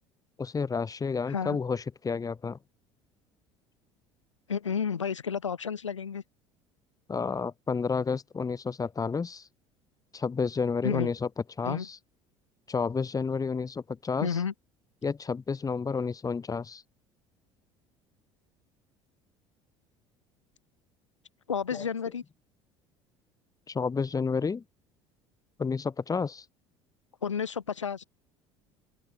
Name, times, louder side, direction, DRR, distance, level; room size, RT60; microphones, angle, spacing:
voice 1, 0.4-2.6 7.1-9.5 10.1-11.3 11.6-12.0 12.7-14.4 15.0-16.8 21.7-21.8 23.7-24.6 25.6-26.4, left 5 dB, 25° left, 1.7 m, -30 dB
voice 2, 1.3-1.6 4.5-6.2 10.8-11.1 11.6-11.9 14.2-14.5 21.5-22.2 27.2-28.0, left 7 dB, 90° left, 0.6 m, -31 dB
open air
figure-of-eight pair, 65°, 15 cm